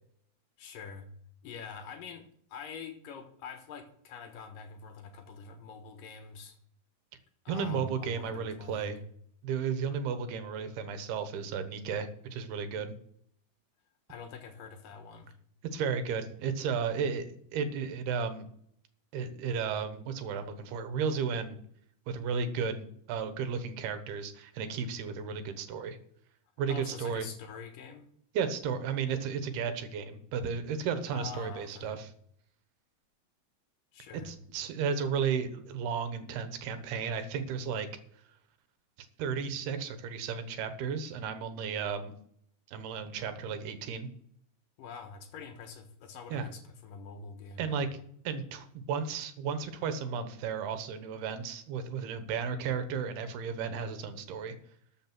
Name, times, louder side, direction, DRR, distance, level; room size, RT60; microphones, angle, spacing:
voice 1, 0.6-1.1 1.4-6.6 7.5-9.0 14.1-15.4 26.7-28.1 31.1-32.0 33.9-34.4 44.8-47.7, left 5 dB, 65° left, 7 dB, 2.7 m, -45 dB
voice 2, 7.5-9.0 9.4-12.9 15.6-18.5 19.1-21.6 22.1-26.0 26.6-27.3 28.3-32.1 34.1-37.9 39.2-42.1 42.7-44.1 46.3-46.5 47.6-47.9 48.2-54.5, right 6 dB, 80° right, 9 dB, 3.2 m, -34 dB
13.5 x 6.7 x 6.0 m, 0.65 s
omnidirectional pair, 4.5 m